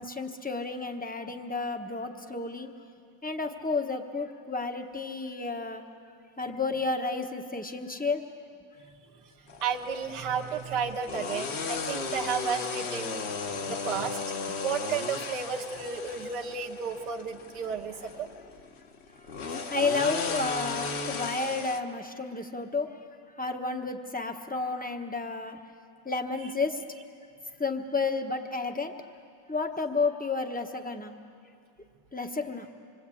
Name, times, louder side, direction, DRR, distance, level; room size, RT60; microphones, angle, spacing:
voice 1, 0.0-2.7 3.2-5.8 6.4-8.2 13.6-13.7 19.7-22.9 23.4-25.6 26.0-26.8 27.6-28.9 29.5-31.1 32.1-32.7, left 3 dB, 5° left, 5 dB, 0.7 m, -31 dB
sound 1, 9.5-21.8, left 4 dB, 45° left, 1.0 m, -36 dB
voice 2, 9.6-14.2 14.6-18.3 26.4-26.5, right 6 dB, 65° right, 1 dB, 1.8 m, -33 dB
26.0 x 23.0 x 8.5 m, 2.4 s
omnidirectional pair, 2.0 m